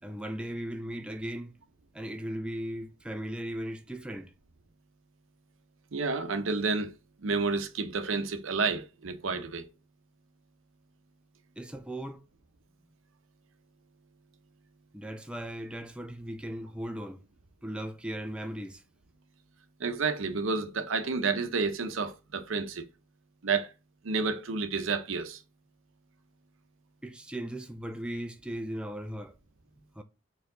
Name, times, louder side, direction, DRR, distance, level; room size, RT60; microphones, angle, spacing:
voice 1, 0.0-1.6 1.9-4.3 11.6-12.2 14.9-17.2 17.6-18.8 27.0-29.4 30.0-30.1, right 1 dB, 5° right, 0.4 m, -37 dB
voice 2, 5.9-6.9 7.2-9.7 19.8-22.9 23.4-23.7 24.0-25.4, right 4 dB, 85° right, 0.7 m, -30 dB
4.5 x 3.2 x 3.7 m
head